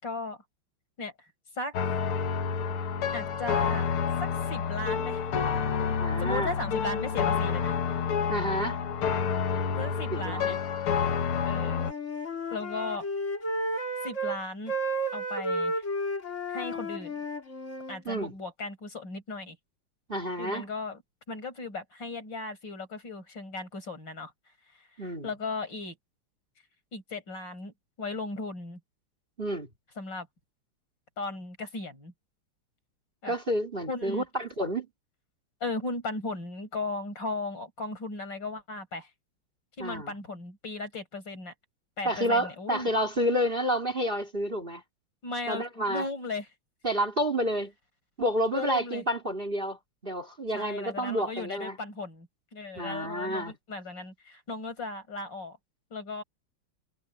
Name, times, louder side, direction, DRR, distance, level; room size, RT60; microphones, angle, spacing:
voice 1, 0.0-0.4 1.0-1.1 1.6-1.7 3.1-3.8 4.2-5.3 6.2-7.8 9.7-10.6 11.4-11.8 12.5-13.0 14.0-14.8 15.1-15.7 16.5-17.2 17.9-19.6 20.4-21.0 21.3-24.3 25.2-26.0 26.9-28.8 30.0-30.3 31.2-32.1 33.2-33.3 33.9-34.2 35.6-39.1 39.8-41.5 42.0-42.9 45.2-46.5 48.5-49.0 50.5-55.6 55.9-56.2, left 3 dB, 55° left, 6.2 m, -36 dB
Sad Piano Remix, 1.7-11.9, left 6 dB, 80° left, 2.3 m, -29 dB
voice 2, 6.0-6.6 8.3-8.8 10.1-10.6 18.0-18.3 20.1-20.7 25.0-25.3 29.4-29.7 33.3-34.9 39.8-40.1 42.0-44.8 45.5-46.0 46.8-47.7 48.2-51.8 52.8-53.5, equal, 25° right, 2.9 m, -29 dB
Wind instrument woodwind instrument, 11.5-14.4 14.7-18.0, equal, 35° left, 3.0 m, -32 dB
omnidirectional pair, 2.4 m